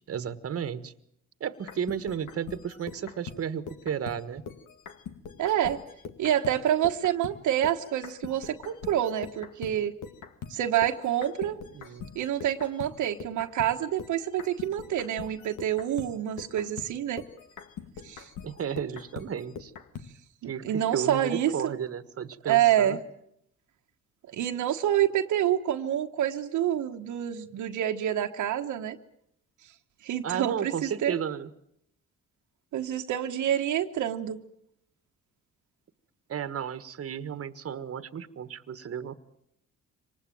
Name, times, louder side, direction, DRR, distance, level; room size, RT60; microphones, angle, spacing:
voice 1, 0.1-0.9 1.4-4.4 11.7-12.1 18.4-19.7 20.4-20.6 20.9-23.0 30.2-31.5 36.3-39.1, right 8 dB, 50° right, 13 dB, 1.5 m, -33 dB
sound 1, 1.6-7.4 7.6-20.1, left 7 dB, 85° left, 1.9 m, -43 dB
voice 2, 5.4-5.8 6.2-9.9 10.5-11.6 12.1-17.2 18.0-18.3 20.4-21.7 22.5-23.0 24.3-29.0 30.0-31.1 32.7-34.4, right 11 dB, 75° right, 4 dB, 1.3 m, -27 dB
25.5 x 19.5 x 9.2 m, 0.74 s
cardioid pair, 90°, 30 cm